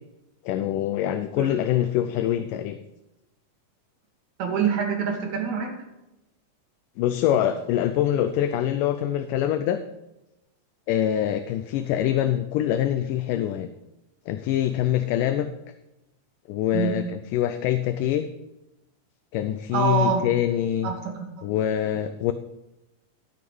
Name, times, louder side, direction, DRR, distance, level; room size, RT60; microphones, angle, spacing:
voice 1, 0.5-2.8 7.0-9.8 10.9-13.7 14.3-15.5 16.5-18.3 19.3-20.9 21.4-22.3, left 11 dB, 80° left, 9 dB, 2.1 m, -24 dB
voice 2, 4.4-5.7 16.7-17.0 19.7-20.3 20.8-21.5, right 6 dB, 60° right, 2 dB, 2.9 m, -25 dB
12.0 x 7.8 x 5.4 m, 0.95 s
omnidirectional pair, 3.9 m